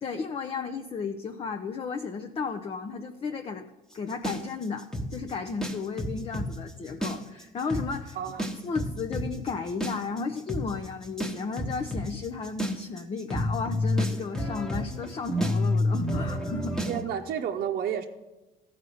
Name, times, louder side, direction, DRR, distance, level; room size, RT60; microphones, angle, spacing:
voice 1, 0.0-3.6 3.9-8.2 8.6-16.8, left 5 dB, 35° left, 6 dB, 0.6 m, -34 dB
sound 1, 4.2-6.5 6.9-7.4 7.7-7.9 8.4-17.0, left 1 dB, 5° left, 1.2 m, -29 dB
voice 2, 8.1-8.5 16.9-18.1, right 9 dB, 60° right, 1 dB, 0.7 m, -31 dB
14.0 x 5.0 x 7.0 m, 1.0 s
cardioid pair, 110°, 17 cm